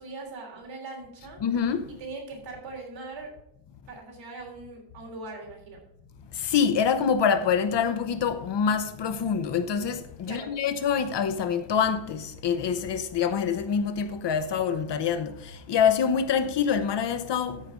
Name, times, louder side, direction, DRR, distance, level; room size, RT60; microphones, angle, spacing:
voice 1, 0.0-1.4 2.0-3.3 3.9-5.8 10.2-10.5, right 3 dB, 65° right, 3.4 m, -40 dB
voice 2, 1.4-1.9 6.4-17.6, left 7 dB, 60° left, 0.8 m, -26 dB
13.0 x 5.0 x 4.9 m
wide cardioid pair, 165°, 49 cm